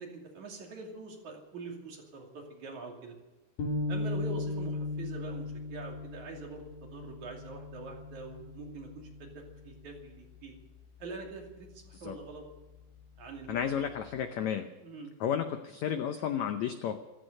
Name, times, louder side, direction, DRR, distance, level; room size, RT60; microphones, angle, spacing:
voice 1, 0.0-3.2 3.9-10.5 11.0-12.4 13.2-13.9 14.8-15.1, right 3 dB, 50° right, 0 dB, 3.8 m, -44 dB
sound 1, 3.6-10.0, left 2 dB, 60° left, 4.5 m, -37 dB
voice 2, 13.5-14.7 15.2-17.0, left 8 dB, 85° left, 8 dB, 1.5 m, -32 dB
15.0 x 14.5 x 6.6 m, 1.1 s
omnidirectional pair, 4.4 m